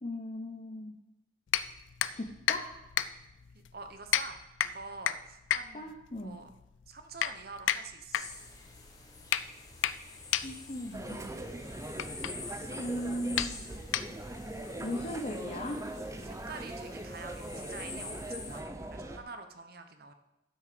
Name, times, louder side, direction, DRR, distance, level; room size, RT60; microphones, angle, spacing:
voice 1, 0.0-0.9 2.1-2.7 5.7-6.4 10.4-11.3 12.8-13.5 14.8-15.8, left 1 dB, 35° left, 1 dB, 0.8 m, -37 dB
sound 1, 1.5-14.5, left 10 dB, 85° left, 0.4 m, -35 dB
voice 2, 3.5-4.4 4.7-5.9 6.2-6.5 6.9-8.2 11.7-11.9 12.3-13.4 16.2-20.1, right 4 dB, 55° right, 8 dB, 0.9 m, -47 dB
sound 2, 8.1-18.6, left 3 dB, 20° left, 1.2 m, -48 dB
sound 3, 10.9-19.2, right 1 dB, 15° right, 0.5 m, -41 dB
12.0 x 5.9 x 5.1 m, 0.91 s
head